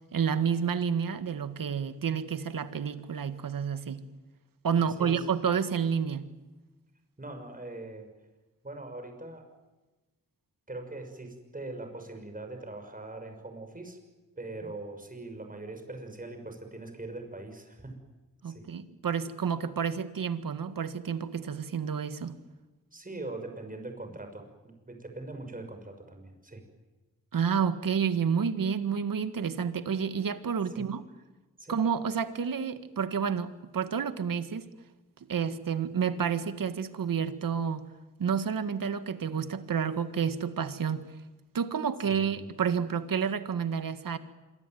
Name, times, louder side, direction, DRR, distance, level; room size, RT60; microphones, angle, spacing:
voice 1, 0.1-4.0 4.6-6.2 18.4-22.4 27.3-31.0 31.7-34.7 35.3-37.8 38.2-41.1 41.5-44.2, right 7 dB, 80° right, 11 dB, 1.8 m, -30 dB
voice 2, 4.8-5.3 7.2-8.1 8.6-9.5 10.7-14.0 14.4-18.0 18.4-18.7 22.9-26.6 30.7-30.9 31.6-31.8 42.1-42.4, right 2 dB, 25° right, 5 dB, 6.2 m, -42 dB
26.5 x 24.5 x 9.3 m, 1.1 s
wide cardioid pair, 90°, 33 cm